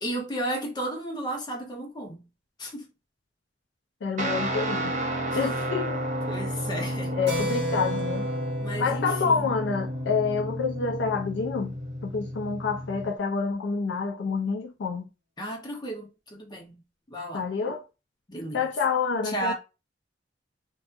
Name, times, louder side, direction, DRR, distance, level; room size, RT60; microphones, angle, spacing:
voice 1, 0.0-2.3 2.6-2.8 5.3-5.5 6.3-7.1 8.6-9.6 15.4-16.8 17.1-17.4 18.3-18.7 19.2-19.5, right 1 dB, 25° left, 0.8 m, -34 dB
voice 2, 4.0-5.0 5.3-6.0 7.1-8.3 8.8-11.7 12.0-15.1 17.3-17.8 18.5-19.5, left 5 dB, 70° left, 0.4 m, -28 dB
Guitar, 4.2-13.1, equal, 40° right, 0.7 m, -31 dB
Keyboard (musical), 7.3-11.4, right 1 dB, 85° right, 1.0 m, -35 dB
2.5 x 2.3 x 2.4 m
head